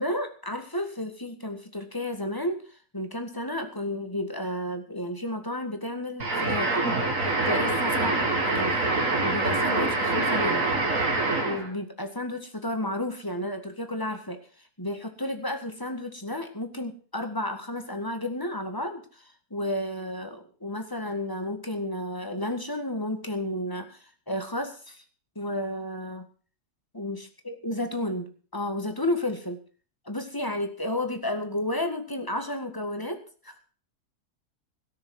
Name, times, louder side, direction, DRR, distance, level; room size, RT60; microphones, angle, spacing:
voice 1, 0.0-6.8 7.4-8.1 8.5-8.8 9.2-10.7 11.4-14.4 14.8-19.2 19.5-25.0 25.3-26.3 26.9-29.6 30.0-33.6, left 1 dB, 15° left, 6 dB, 1.7 m, -32 dB
sound 1, 6.2-11.7, right 2 dB, 55° right, 2.5 m, -25 dB
17.5 x 6.8 x 7.7 m, 0.41 s
omnidirectional pair, 1.7 m